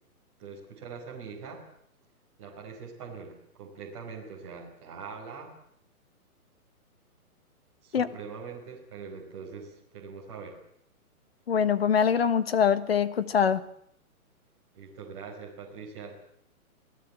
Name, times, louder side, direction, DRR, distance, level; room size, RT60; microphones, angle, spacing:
voice 1, 0.4-1.6 2.4-5.5 7.8-10.6 14.7-16.3, right 5 dB, 25° right, 4.8 m, -43 dB
voice 2, 11.5-13.6, left 7 dB, 40° left, 1.4 m, -24 dB
27.5 x 17.5 x 8.8 m
hypercardioid pair, 180°, 44 cm